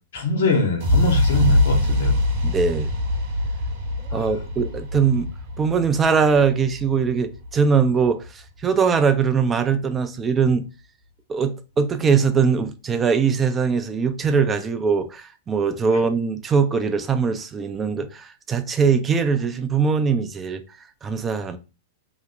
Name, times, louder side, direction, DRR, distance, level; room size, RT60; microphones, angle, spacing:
voice 1, 0.1-2.2 4.1-4.2, left 2 dB, 75° left, 1.0 m, -22 dB
sound 1, 0.8-8.7, left 1 dB, 55° right, 0.9 m, -24 dB
voice 2, 2.4-2.9 4.1-5.3 5.6-10.7 11.3-20.6 21.0-21.6, right 5 dB, 20° right, 0.4 m, -21 dB
2.9 x 2.1 x 3.8 m
hypercardioid pair, 115°, 0 cm